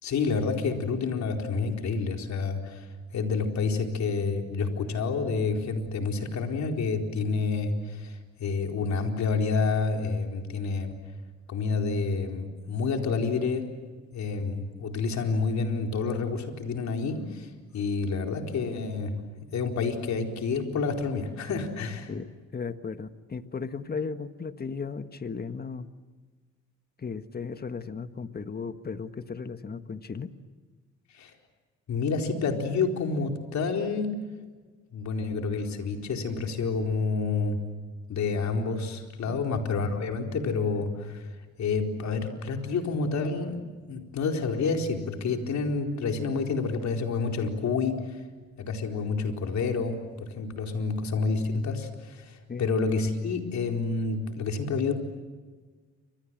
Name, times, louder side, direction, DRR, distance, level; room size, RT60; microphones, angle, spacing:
voice 1, 0.0-2.9 3.1-10.9 11.5-13.7 14.1-19.1 19.5-22.1 31.1-31.3 31.9-34.1 34.9-37.6 38.1-41.2 41.6-43.6 43.9-48.2 48.6-54.9, left 4 dB, 65° left, 3 dB, 4.3 m, -29 dB
voice 2, 22.1-25.9 27.0-30.3 39.3-39.4 52.5-52.7, left 5 dB, 30° left, 10 dB, 1.6 m, -36 dB
30.0 x 26.0 x 7.6 m, 1.4 s
cardioid pair, 90°, 30 cm